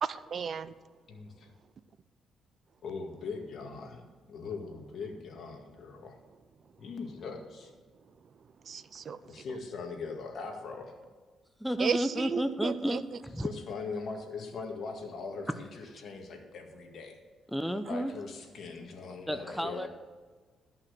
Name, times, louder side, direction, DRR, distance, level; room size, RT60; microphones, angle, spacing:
voice 1, 0.0-0.7 8.7-9.2 11.8-13.0, right 6 dB, 50° right, 16 dB, 0.4 m, -33 dB
voice 2, 1.1-1.5 2.8-6.2 6.8-7.7 9.3-10.9 13.4-17.2 17.9-19.9, left 4 dB, 60° left, 3 dB, 2.0 m, -41 dB
voice 3, 11.6-13.5 15.5-15.6 17.5-18.1 19.3-19.9, equal, ahead, 10 dB, 0.6 m, -32 dB
13.5 x 5.8 x 6.7 m, 1.4 s
cardioid pair, 90°, 0 cm